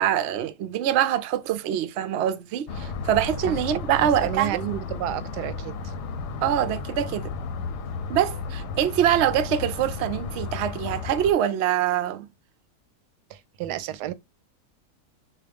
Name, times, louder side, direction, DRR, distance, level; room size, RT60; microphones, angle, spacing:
voice 1, 0.0-4.6 6.4-7.3 8.1-12.3, right 10 dB, 75° right, 0.6 m, -24 dB
sound 1, 2.7-11.3, left 4 dB, 90° left, 1.3 m, -33 dB
voice 2, 4.0-5.9 13.3-14.1, right 13 dB, 90° right, 1.2 m, -31 dB
4.2 x 2.8 x 3.3 m
omnidirectional pair, 1.7 m